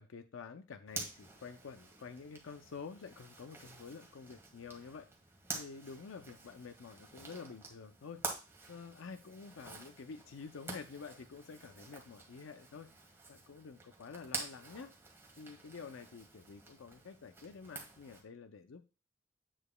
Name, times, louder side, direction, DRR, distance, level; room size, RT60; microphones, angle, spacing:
voice 1, 0.0-5.1 5.5-8.2 8.7-12.9 13.3-14.9 15.4-18.9, left 5 dB, 80° left, 8 dB, 0.5 m, -49 dB
Zipper (clothing), 0.9-18.2, right 3 dB, 15° right, 1.6 m, -48 dB
8.7 x 6.8 x 2.2 m, 0.31 s
head